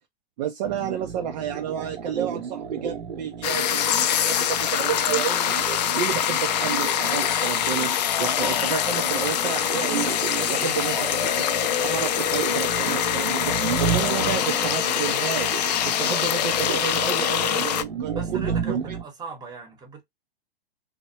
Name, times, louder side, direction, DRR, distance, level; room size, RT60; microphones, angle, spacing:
voice 1, 0.4-5.7 5.9-10.2 10.5-11.3 11.8-15.5 15.8-18.9, right 9 dB, 45° right, 0.6 m, -31 dB
sound 1, 0.6-19.0, right 7 dB, 70° right, 0.8 m, -33 dB
sound 2, 3.4-17.8, left 10 dB, 45° left, 0.4 m, -24 dB
voice 2, 10.4-11.2 18.1-20.0, right 5 dB, 15° right, 1.1 m, -39 dB
3.2 x 2.2 x 2.8 m
figure-of-eight pair, 110°, 31 cm